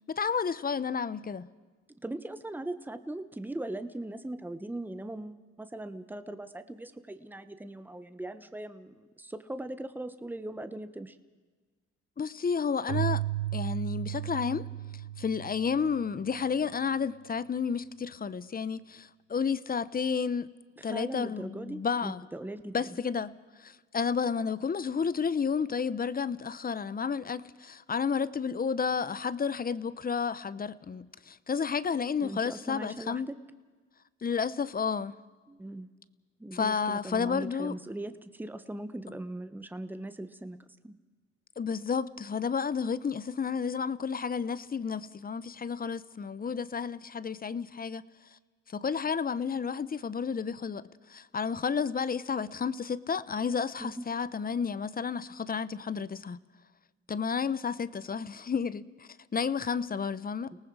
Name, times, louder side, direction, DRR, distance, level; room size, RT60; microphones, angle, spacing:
voice 1, 0.1-1.5 12.2-13.2 13.5-14.6 15.2-20.5 20.8-22.2 22.7-23.3 23.6-33.3 34.2-35.1 36.5-37.8 41.6-48.0 48.7-50.8 51.1-56.4 57.1-60.5, left 6 dB, 30° left, 0.8 m, -31 dB
voice 2, 2.0-11.2 20.8-23.0 32.2-33.4 35.5-35.9 36.4-40.9 53.8-54.0 60.5-60.6, right 1 dB, 5° right, 1.1 m, -40 dB
Keyboard (musical), 12.9-16.4, right 15 dB, 70° right, 0.8 m, -34 dB
29.5 x 19.0 x 4.8 m
cardioid pair, 90°, 30 cm